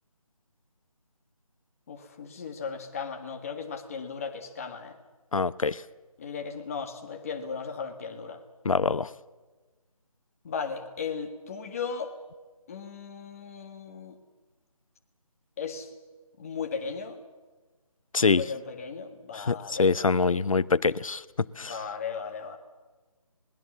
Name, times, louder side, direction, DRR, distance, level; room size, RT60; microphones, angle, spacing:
voice 1, 1.9-5.0 6.2-8.4 10.4-12.1 12.7-14.2 15.6-15.9 16.4-17.2 18.4-19.9 20.5-20.7 21.7-22.6, left 5 dB, 25° left, 5 dB, 1.8 m, -36 dB
voice 2, 5.3-5.8 8.6-9.1 18.1-18.4 19.3-21.8, left 4 dB, 65° left, 18 dB, 0.8 m, -25 dB
26.0 x 20.0 x 7.3 m, 1.3 s
figure-of-eight pair, 165°, 19 cm